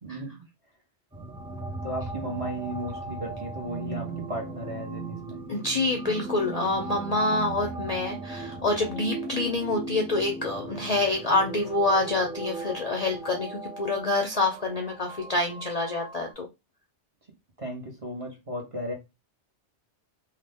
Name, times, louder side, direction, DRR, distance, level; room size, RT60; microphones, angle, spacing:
voice 1, 0.0-0.4 1.8-5.4 17.6-18.9, right 1 dB, 30° right, 0.9 m, -35 dB
sound 1, 1.1-16.3, right 3 dB, 10° right, 0.3 m, -38 dB
voice 2, 5.5-16.5, left 2 dB, 50° left, 0.5 m, -27 dB
2.7 x 2.2 x 3.4 m
omnidirectional pair, 1.2 m